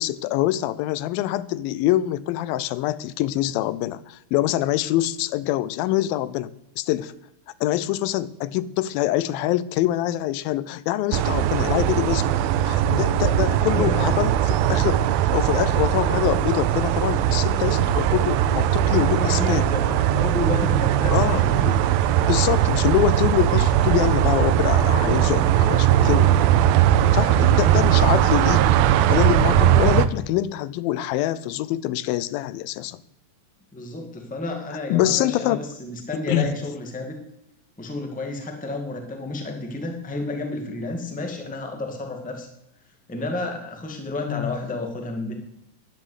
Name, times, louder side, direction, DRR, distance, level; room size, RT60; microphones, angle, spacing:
voice 1, 0.0-7.1 7.6-12.4 12.6-19.7 21.1-21.8 22.2-26.5 27.0-28.7 29.1-33.0 34.9-35.6 36.3-36.5 44.3-44.6, left 14 dB, 85° left, 17 dB, 2.4 m, -25 dB
sound 1, 11.1-30.1, right 11 dB, 85° right, 2.5 m, -19 dB
voice 2, 13.7-14.1 18.9-21.6 33.7-37.2 37.8-42.5 43.1-45.3, left 2 dB, 5° left, 3 dB, 1.1 m, -31 dB
11.0 x 10.5 x 8.2 m, 0.80 s
omnidirectional pair, 4.1 m